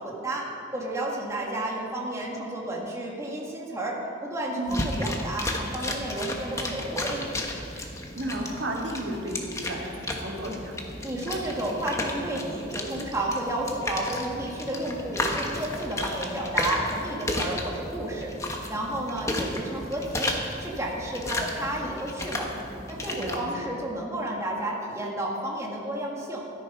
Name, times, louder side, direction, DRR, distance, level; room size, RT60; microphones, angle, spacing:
voice 1, 0.0-7.2 11.0-18.3 18.7-20.3 20.6-22.5 22.9-26.4, right 1 dB, 15° right, -3 dB, 1.8 m, -31 dB
voice 2, 4.5-4.9 8.1-10.8 23.2-23.7, right 1 dB, 85° right, -1 dB, 2.2 m, -33 dB
sound 1, 4.7-23.4, left 1 dB, 15° left, 1.2 m, -33 dB
13.5 x 12.0 x 5.5 m, 2.7 s
head